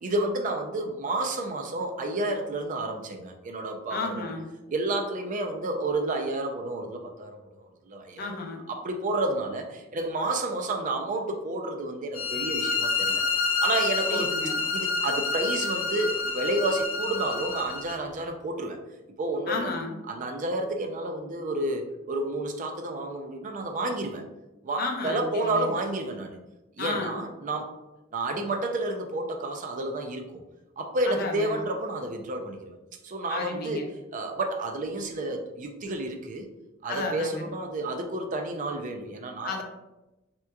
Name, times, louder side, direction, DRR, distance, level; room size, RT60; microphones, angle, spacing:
voice 1, 0.0-4.3 4.7-8.3 8.7-13.2 13.6-14.3 14.7-18.8 19.2-19.7 20.1-24.2 24.6-26.4 26.8-27.7 28.1-30.4 30.8-32.8 33.0-33.8 34.1-36.5 36.8-39.6, right 2 dB, 40° right, 4 dB, 0.4 m, -30 dB
voice 2, 3.9-4.5 8.2-8.6 14.0-14.6 19.5-19.9 24.8-25.7 26.8-27.2 31.1-31.6 33.3-33.9 36.9-37.5 39.4-39.6, left 3 dB, 50° left, 2 dB, 0.6 m, -33 dB
sound 1, 12.1-18.0, left 4 dB, 85° left, 0.7 m, -28 dB
3.5 x 2.9 x 2.2 m, 0.98 s
head